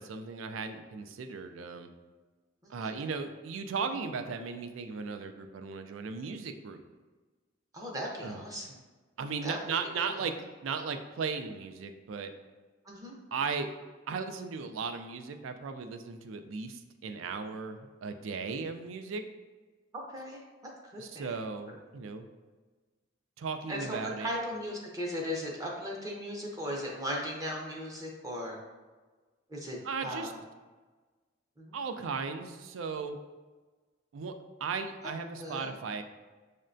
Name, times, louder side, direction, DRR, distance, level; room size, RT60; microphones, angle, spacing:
voice 1, 0.0-1.9 2.7-6.8 8.2-8.4 9.2-10.3 10.6-12.3 13.3-13.7 14.1-19.2 21.0-22.3 23.4-24.3 29.8-30.3 31.7-33.2 34.1-34.3 34.6-36.0, right 5 dB, 85° right, 8 dB, 0.4 m, -36 dB
voice 2, 7.7-8.8 9.4-9.6 10.0-10.2 12.8-13.2 19.9-20.4 20.9-21.3 23.7-28.6 29.5-30.4 31.6-31.8 35.4-35.7, equal, 20° right, -2 dB, 0.6 m, -37 dB
6.3 x 2.1 x 2.5 m, 1.3 s
head